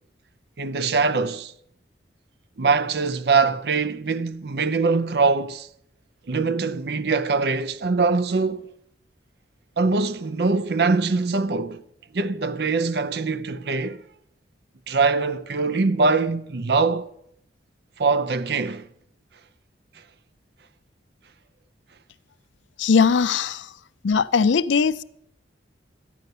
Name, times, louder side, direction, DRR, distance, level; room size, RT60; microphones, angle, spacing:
voice 1, 0.6-1.5 2.6-5.7 6.3-8.6 9.8-11.8 12.1-14.0 14.9-17.1 18.0-18.9, right 4 dB, 60° right, 0.5 m, -23 dB
voice 2, 22.8-23.7 24.0-25.0, left 5 dB, 80° left, 0.5 m, -19 dB
13.5 x 9.3 x 6.7 m
head